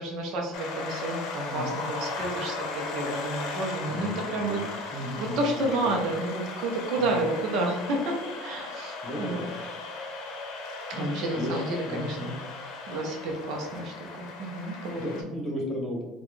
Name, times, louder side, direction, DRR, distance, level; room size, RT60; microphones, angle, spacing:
voice 1, 0.0-9.4 10.9-12.3 12.9-15.0, right 2 dB, 55° right, 0 dB, 0.7 m, -30 dB
sound 1, 0.5-15.2, left 3 dB, 60° left, 0.8 m, -37 dB
voice 2, 1.4-1.8 3.9-5.9 7.0-7.2 9.0-9.5 10.9-11.5 11.9-12.3 15.0-16.0, left 1 dB, 10° left, -2 dB, 1.2 m, -35 dB
4.0 x 2.3 x 3.1 m, 1.2 s
cardioid pair, 145°, 0 cm